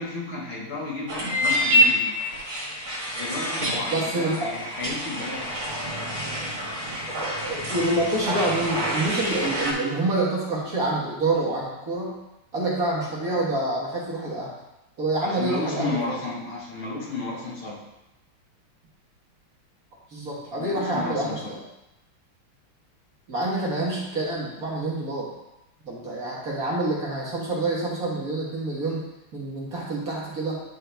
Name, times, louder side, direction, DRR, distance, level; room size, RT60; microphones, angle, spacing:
voice 1, 0.0-2.2 3.1-5.6 15.2-17.8 20.5-21.5, left 3 dB, 65° left, -5 dB, 2.3 m, -33 dB
sound 1, 1.1-9.7, equal, 70° right, 2.5 m, -27 dB
voice 2, 3.9-4.5 7.1-12.2 12.5-14.5 15.0-16.2 20.1-21.6 23.3-25.3 25.9-29.0 29.3-30.6, right 2 dB, 45° right, -5 dB, 1.6 m, -27 dB
10.5 x 3.6 x 3.3 m, 0.92 s
omnidirectional pair, 2.3 m